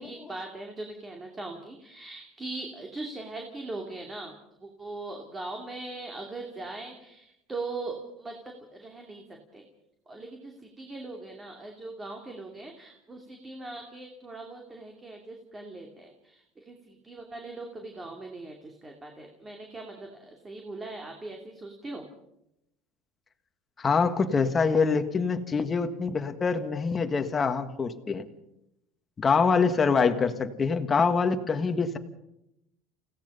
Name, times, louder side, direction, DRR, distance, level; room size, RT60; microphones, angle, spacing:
voice 1, 0.0-4.3 4.6-9.6 10.1-22.1, right 2 dB, 15° right, 2 dB, 2.6 m, -40 dB
voice 2, 23.8-28.2 29.2-32.0, left 5 dB, 25° left, 7 dB, 1.7 m, -25 dB
29.5 x 17.0 x 5.5 m, 0.82 s
cardioid pair, 135°, 0 cm